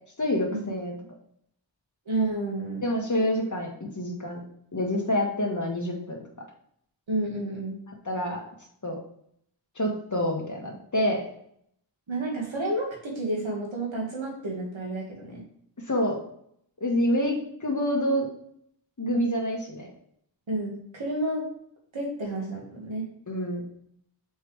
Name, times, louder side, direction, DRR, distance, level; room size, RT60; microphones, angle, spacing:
voice 1, 0.2-1.0 2.8-3.7 3.9-4.4 4.7-6.2 8.0-8.4 8.8-9.0 9.7-11.2 15.9-16.2 16.8-18.3 19.0-19.9 23.3-23.6, equal, 40° left, 0 dB, 1.7 m, -27 dB
voice 2, 2.1-2.8 7.1-7.8 12.1-15.4 20.5-21.5 21.9-23.1, right 2 dB, 90° right, -3 dB, 2.2 m, -30 dB
6.4 x 4.8 x 3.4 m, 0.68 s
wide cardioid pair, 65°, 45 cm